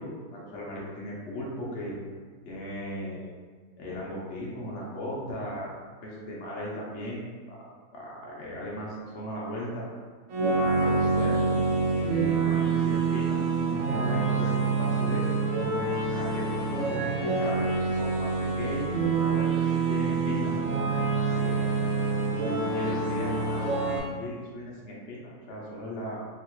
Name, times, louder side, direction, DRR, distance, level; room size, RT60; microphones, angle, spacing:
voice 1, 0.0-1.9 2.4-3.4 3.8-5.7 6.0-7.6 7.9-9.9 10.6-11.5 12.0-15.4 16.1-20.7 21.3-21.7 22.3-26.2, left 1 dB, 60° left, -5 dB, 0.7 m, -37 dB
sound 1, 10.3-24.0, right 4 dB, 60° right, 0.9 m, -26 dB
3.0 x 2.7 x 2.9 m, 1.5 s
omnidirectional pair, 1.8 m